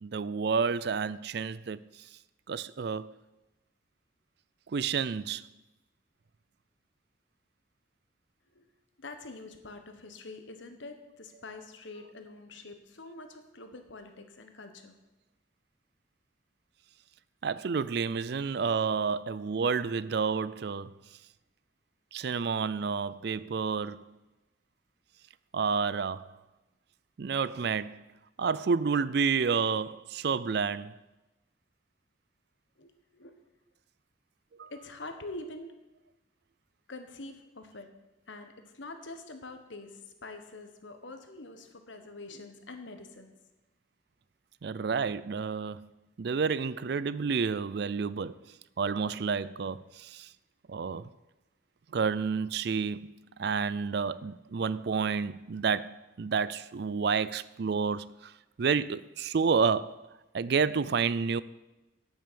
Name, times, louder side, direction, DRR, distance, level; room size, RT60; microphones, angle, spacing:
voice 1, 0.0-1.8 2.5-3.1 4.7-5.5 17.4-20.9 22.1-24.0 25.5-26.3 27.2-28.0 28.4-31.0 34.6-34.7 44.6-45.9 46.2-48.4 48.8-50.3 50.7-51.1 51.9-53.1 53.4-58.3 58.6-60.1 60.3-61.4, right 5 dB, 55° right, 0.4 m, -30 dB
voice 2, 9.0-15.0 32.8-33.4 34.7-35.7 36.9-37.9 38.3-43.3, left 2 dB, 70° left, 1.3 m, -45 dB
9.0 x 8.9 x 6.9 m
head